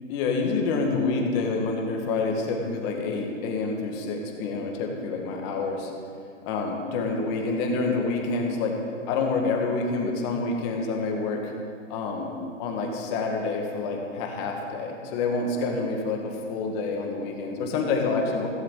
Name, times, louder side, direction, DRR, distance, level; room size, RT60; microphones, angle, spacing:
voice 1, 0.1-5.9 6.5-8.8 9.1-11.5 11.9-12.3 12.6-18.5, left 3 dB, 20° left, 1 dB, 1.8 m, -27 dB
16.0 x 15.5 x 4.0 m, 2.3 s
hypercardioid pair, 155°, 38 cm